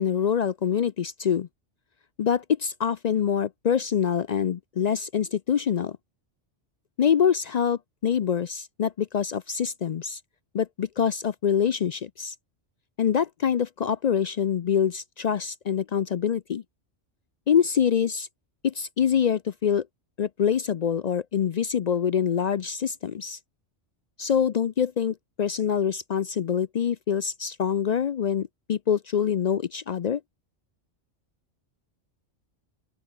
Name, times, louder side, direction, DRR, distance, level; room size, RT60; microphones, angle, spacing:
voice 1, 0.0-1.5 2.2-6.0 7.0-10.2 10.5-12.3 13.0-16.6 17.5-18.3 18.6-19.9 20.2-23.4 24.2-30.2, left 8 dB, 60° left, 0.4 m, -25 dB
open air
omnidirectional pair, 1.2 m